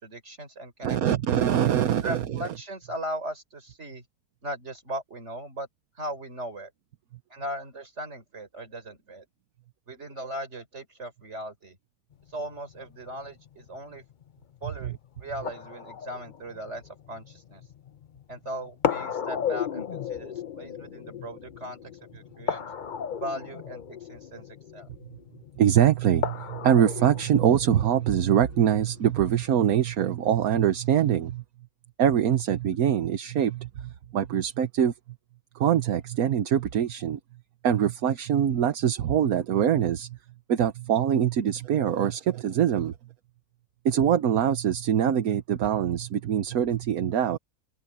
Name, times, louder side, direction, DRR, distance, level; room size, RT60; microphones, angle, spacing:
voice 1, 0.0-1.1 2.0-4.0 4.4-5.7 6.0-6.7 7.3-9.2 9.9-11.8 12.3-14.0 14.6-17.6 18.3-22.7 23.2-24.9, right 1 dB, 50° right, 4.7 m, -38 dB
voice 2, 0.8-2.4 14.8-14.9 25.6-31.4 32.0-34.9 35.5-37.2 37.6-40.2 40.5-42.9 43.8-47.4, right 9 dB, 75° right, 1.4 m, -23 dB
sound 1, 12.1-29.7, left 8 dB, 45° left, 0.7 m, -36 dB
omnidirectional pair, 1.5 m